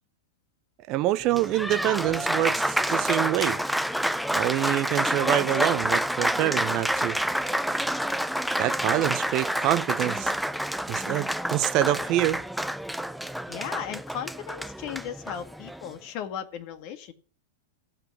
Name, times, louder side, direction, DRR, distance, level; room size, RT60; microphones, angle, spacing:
voice 1, 0.9-3.6 4.3-7.2 8.6-10.3 10.9-12.4, right 15 dB, 45° right, 0.9 m, -26 dB
Applause, 1.2-15.9, equal, ahead, 0.5 m, -28 dB
voice 2, 13.5-17.1, left 9 dB, 50° left, 1.7 m, -36 dB
15.0 x 6.0 x 8.8 m
hypercardioid pair, 110°, 0 cm